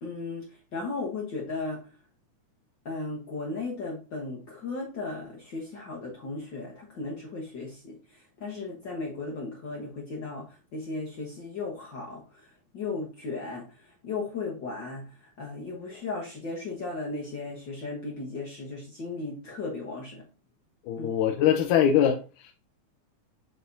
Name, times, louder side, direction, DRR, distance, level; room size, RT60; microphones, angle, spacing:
voice 1, 0.0-1.9 2.8-20.2 21.0-21.1, left 3 dB, 55° left, -2 dB, 1.3 m, -36 dB
voice 2, 20.8-22.5, left 9 dB, 80° left, 2 dB, 2.2 m, -23 dB
8.2 x 4.4 x 2.7 m, 0.35 s
omnidirectional pair, 3.6 m